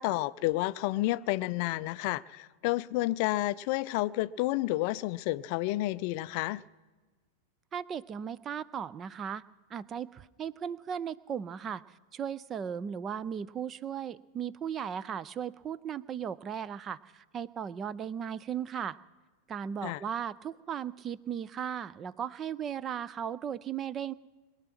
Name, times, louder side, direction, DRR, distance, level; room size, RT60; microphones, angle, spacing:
voice 1, 0.0-6.6 19.8-20.0, left 18 dB, 45° left, 0.4 m, -30 dB
voice 2, 7.7-9.4 9.7-11.8 12.1-19.0 19.5-24.1, right 8 dB, 25° right, 0.5 m, -36 dB
22.0 x 9.7 x 6.0 m
figure-of-eight pair, 90°, 0 cm